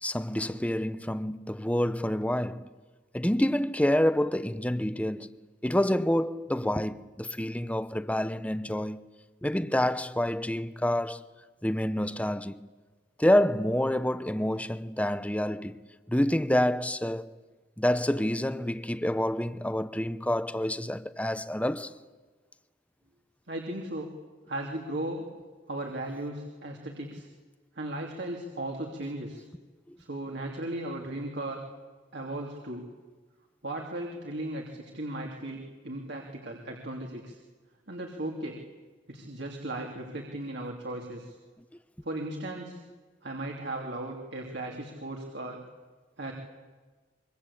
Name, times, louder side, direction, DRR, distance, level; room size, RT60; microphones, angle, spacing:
voice 1, 0.0-2.7 3.1-5.3 5.6-9.1 9.4-11.2 11.6-12.7 13.2-15.8 16.1-17.3 17.8-21.9 29.9-30.0, left 1 dB, 5° left, 0.8 m, -28 dB
voice 2, 23.5-24.1 24.5-25.2 25.7-27.3 27.7-29.4 30.0-31.6 32.1-32.9 33.6-37.4 37.9-38.6 39.1-41.3 42.0-42.8 43.2-45.6 46.2-46.3, right 1 dB, 65° right, 3.1 m, -36 dB
25.5 x 23.5 x 8.5 m
head